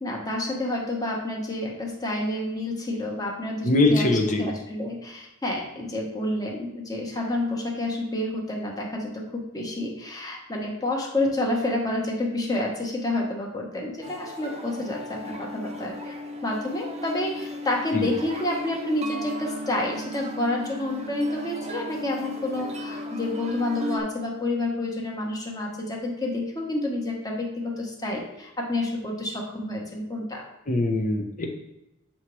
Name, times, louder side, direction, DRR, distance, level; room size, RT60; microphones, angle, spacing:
voice 1, 0.0-4.1 4.4-16.1 16.4-30.4, left 1 dB, 20° left, -1 dB, 1.2 m, -29 dB
voice 2, 3.6-4.5 17.9-18.1 30.7-31.5, left 2 dB, 40° left, 3 dB, 0.9 m, -22 dB
sound 1, 14.0-24.0, left 1 dB, 30° right, 0.6 m, -35 dB
7.5 x 2.9 x 4.7 m, 0.94 s
head